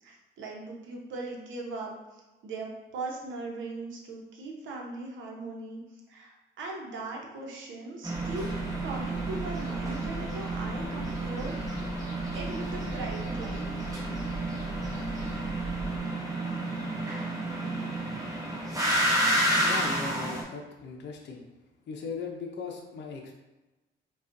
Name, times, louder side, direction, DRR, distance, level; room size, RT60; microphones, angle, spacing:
voice 1, 0.0-8.5 8.8-11.8 12.3-13.7, right 3 dB, 75° right, -1 dB, 0.9 m, -39 dB
sound 1, 8.0-20.4, right 1 dB, 15° right, 1.1 m, -31 dB
sound 2, 8.1-16.0, right 1 dB, 35° left, 1.2 m, -41 dB
voice 2, 19.6-21.4 21.9-23.3, left 4 dB, 60° left, 0 dB, 0.6 m, -38 dB
4.9 x 2.4 x 2.6 m, 1.1 s
cardioid pair, 90°, 20 cm